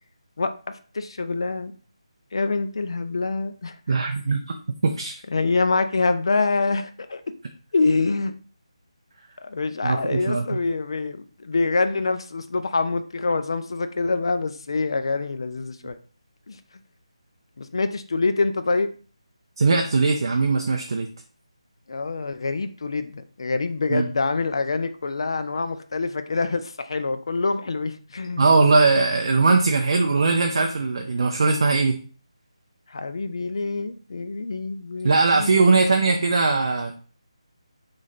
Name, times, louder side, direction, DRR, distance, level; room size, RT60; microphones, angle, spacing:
voice 1, 0.4-1.7 2.3-4.0 5.3-7.3 7.7-8.3 9.4-16.0 16.5-16.6 17.6-18.9 21.9-28.5 32.9-36.0, left 3 dB, 50° left, 10 dB, 0.4 m, -26 dB
voice 2, 3.9-4.6 4.8-5.1 9.8-10.4 19.6-21.1 23.9-24.1 28.4-31.9 35.0-36.9, right 3 dB, 45° right, 2 dB, 0.4 m, -20 dB
3.1 x 2.6 x 4.0 m, 0.40 s
figure-of-eight pair, 170°, 3 cm